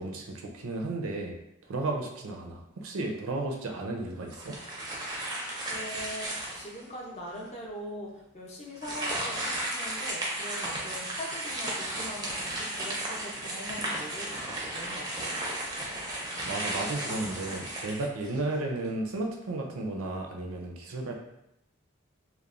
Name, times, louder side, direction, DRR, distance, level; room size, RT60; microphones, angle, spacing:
voice 1, 0.0-1.3 1.7-4.6 16.4-21.2, right 2 dB, 85° right, 1 dB, 0.5 m, -33 dB
sound 1, 4.3-6.8 7.4-7.5 8.8-18.6, right 1 dB, 20° right, 0.4 m, -34 dB
voice 2, 5.7-15.4, equal, 30° left, -2 dB, 0.5 m, -42 dB
2.9 x 2.0 x 2.4 m, 0.84 s
head